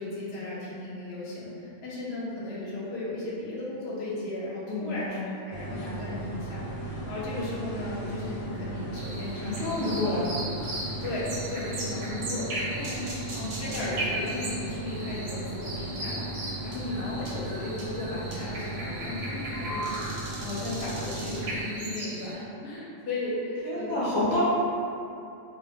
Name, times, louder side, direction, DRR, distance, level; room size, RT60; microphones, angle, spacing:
voice 1, 0.0-10.1 11.0-13.3 13.6-20.0 20.4-24.0, left 2 dB, 60° left, -6 dB, 0.8 m, -35 dB
voice 2, 4.7-5.3 9.4-10.3 13.3-13.8 23.6-24.4, left 2 dB, 40° left, -9 dB, 0.4 m, -29 dB
sound 1, 5.5-21.6, right 2 dB, 85° left, 1.0 m, -36 dB
sound 2, 8.9-22.3, right 1 dB, 60° right, 0.6 m, -38 dB
2.2 x 2.1 x 3.4 m, 2.7 s
omnidirectional pair, 1.3 m